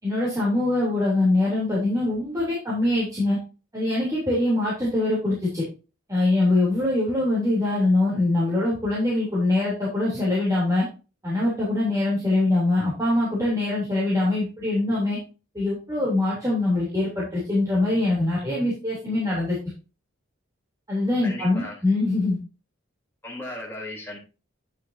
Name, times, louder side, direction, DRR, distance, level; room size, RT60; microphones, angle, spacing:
voice 1, 0.0-3.4 3.7-5.6 6.1-10.8 11.2-15.2 15.5-19.6 20.9-22.4, left 2 dB, 15° right, -7 dB, 3.2 m, -23 dB
voice 2, 21.2-21.7 23.2-24.2, left 1 dB, 10° left, -4 dB, 3.4 m, -36 dB
9.6 x 7.4 x 2.7 m, 0.32 s
head